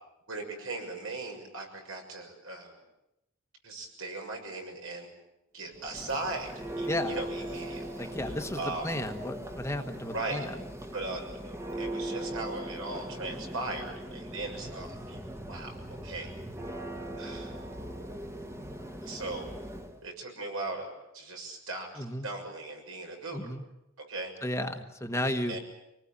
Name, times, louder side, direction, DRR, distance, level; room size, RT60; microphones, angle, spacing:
voice 1, 0.3-2.8 3.6-5.1 5.5-8.9 10.1-10.4 10.9-15.2 15.5-15.7 16.0-16.3 17.2-17.5 19.0-19.5 20.0-23.5 24.1-24.3 25.5-25.6, right 2 dB, 75° right, 2 dB, 6.7 m, -38 dB
Church bell, 5.7-20.0, right 1 dB, 15° right, 1.4 m, -39 dB
voice 2, 6.8-7.2 8.0-10.5 22.0-22.3 23.3-23.6 24.4-25.6, left 1 dB, 15° left, 6 dB, 1.4 m, -33 dB
26.0 x 19.5 x 8.9 m, 0.87 s
head